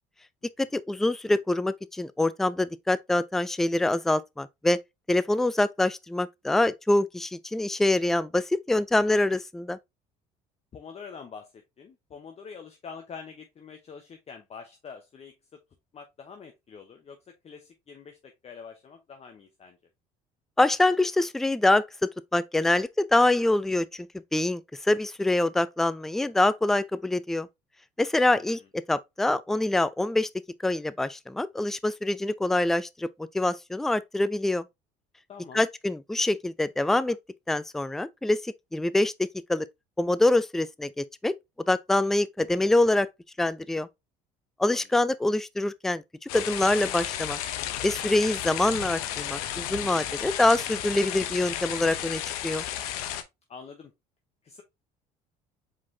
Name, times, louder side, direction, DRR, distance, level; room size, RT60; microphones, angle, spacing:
voice 1, 0.6-4.8 5.1-9.8 20.6-21.8 22.3-24.1 24.3-27.5 28.0-28.6 28.9-30.3 30.6-33.1 33.3-34.6 35.5-37.2 37.5-39.1 39.5-39.7 40.0-41.3 41.7-43.1 43.4-43.9 44.6-46.0 46.3-47.4 47.8-52.6, left 2 dB, ahead, 0.3 m, -25 dB
voice 2, 10.7-15.3 15.9-19.8 28.2-28.7 35.3-35.7 44.7-45.0 53.5-53.9 54.4-54.6, left 6 dB, 35° left, 0.8 m, -45 dB
sound 1, 46.3-53.2, left 11 dB, 85° left, 0.7 m, -33 dB
4.8 x 3.9 x 2.6 m
hypercardioid pair, 75°, 19 cm